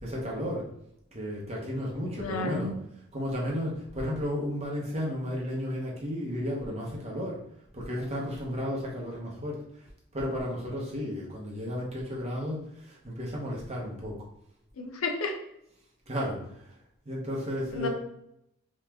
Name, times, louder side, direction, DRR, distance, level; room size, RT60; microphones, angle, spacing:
voice 1, 0.0-0.7 1.1-2.7 3.1-7.4 7.7-9.6 10.1-14.2 16.1-16.4 17.1-17.9, equal, 30° right, -3 dB, 0.7 m, -33 dB
voice 2, 2.2-2.7 14.8-15.3 17.7-17.9, left 3 dB, 85° left, 4 dB, 0.5 m, -31 dB
2.9 x 2.3 x 3.3 m, 0.77 s
head